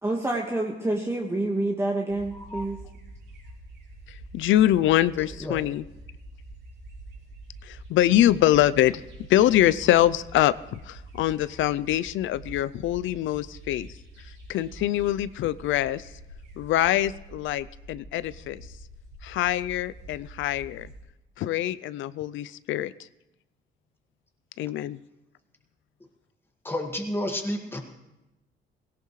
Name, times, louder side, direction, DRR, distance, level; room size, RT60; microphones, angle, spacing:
voice 1, 0.0-2.8, right 2 dB, 15° right, -1 dB, 1.5 m, -27 dB
sound 1, 2.1-21.0, right 1 dB, 80° right, 4.7 m, -46 dB
voice 2, 2.3-2.7 5.2-5.6 26.6-27.8, left 1 dB, 10° left, 2 dB, 1.9 m, -31 dB
voice 3, 4.3-5.8 7.6-9.0 9.3-10.5 10.9-13.9 14.5-16.0 16.6-18.6 19.2-20.9 21.4-22.9 24.6-25.0, left 13 dB, 80° left, 17 dB, 0.5 m, -24 dB
18.0 x 17.0 x 3.2 m, 0.93 s
cardioid pair, 90°, 20 cm